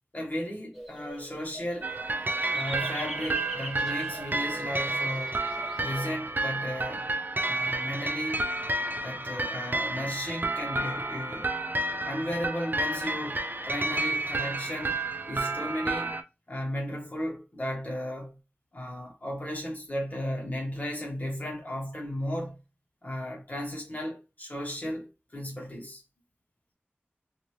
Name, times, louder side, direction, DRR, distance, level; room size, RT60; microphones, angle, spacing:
voice 1, 0.1-1.9 2.5-5.4 5.8-7.0 7.4-8.4 9.0-11.5 12.0-15.0 15.2-16.1 16.5-18.4 18.7-22.6 23.0-26.0, equal, 40° left, 1.3 m, -35 dB
sound 1, 0.7-6.2, equal, ahead, 0.9 m, -43 dB
sound 2, 1.8-16.2, right 2 dB, 50° right, 0.4 m, -31 dB
2.6 x 2.5 x 3.1 m
wide cardioid pair, 55°, 4 cm